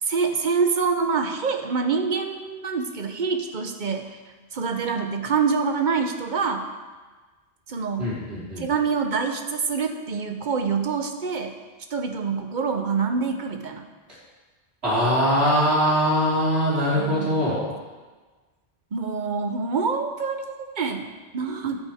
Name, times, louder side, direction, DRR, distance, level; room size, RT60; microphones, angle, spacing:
voice 1, 0.0-4.2 4.5-6.7 7.7-8.2 8.6-11.6 11.9-13.9 16.9-17.4 18.9-21.8, right 5 dB, 50° right, 5 dB, 0.9 m, -26 dB
voice 2, 8.0-8.6 14.8-17.6, equal, 80° right, -9 dB, 3.7 m, -22 dB
10.0 x 8.5 x 3.5 m, 1.3 s
omnidirectional pair, 1.1 m